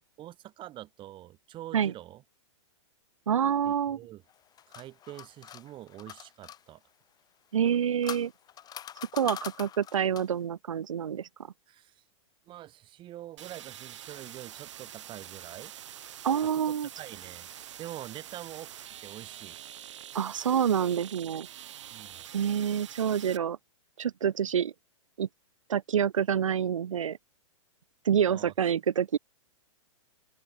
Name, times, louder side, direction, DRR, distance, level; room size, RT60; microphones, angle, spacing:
voice 1, 0.2-2.2 3.6-4.2 4.7-6.8 11.7-12.0 12.5-15.7 16.4-17.5 17.8-19.6 21.9-22.2 28.3-28.8, right 14 dB, 30° right, 4.5 m, -45 dB
voice 2, 3.3-4.0 7.5-8.3 9.1-11.3 16.2-16.9 20.1-21.5 22.3-23.6 24.0-24.7 25.2-25.3 25.7-27.2 28.0-29.2, right 8 dB, 85° right, 0.8 m, -27 dB
sound 1, 4.3-6.6 7.6-10.4, left 10 dB, 25° left, 3.0 m, -43 dB
sound 2, 13.4-23.4, right 11 dB, 70° right, 4.2 m, -46 dB
hypercardioid pair, 120°, 16 cm